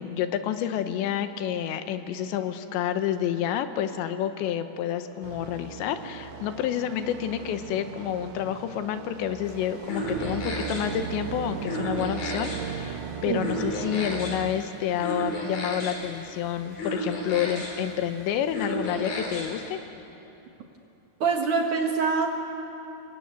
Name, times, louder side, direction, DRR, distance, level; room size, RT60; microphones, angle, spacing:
voice 1, 0.0-19.8, left 10 dB, 75° left, 9 dB, 3.1 m, -29 dB
sound 1, 5.2-14.6, right 8 dB, 85° right, 3.7 m, -37 dB
sound 2, 9.4-19.7, equal, 50° left, 5.5 m, -34 dB
voice 2, 21.2-22.3, right 5 dB, 65° right, 2 dB, 2.1 m, -24 dB
25.5 x 22.5 x 9.4 m, 2.9 s
omnidirectional pair, 5.5 m